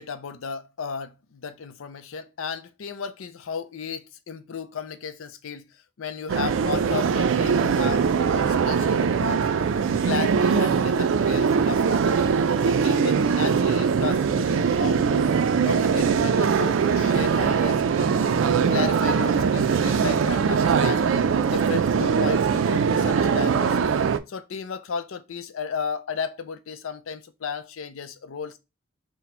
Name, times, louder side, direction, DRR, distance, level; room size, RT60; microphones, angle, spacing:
voice 1, 0.0-5.7 6.0-9.5 10.0-12.2 12.6-15.3 15.6-17.8 18.7-21.1 21.4-23.9 24.3-28.6, left 6 dB, 85° left, 0.5 m, -34 dB
sound 1, 6.3-24.2, right 6 dB, 75° right, 0.3 m, -22 dB
sound 2, 15.9-21.4, left 2 dB, 50° left, 1.7 m, -43 dB
4.1 x 2.1 x 4.2 m
head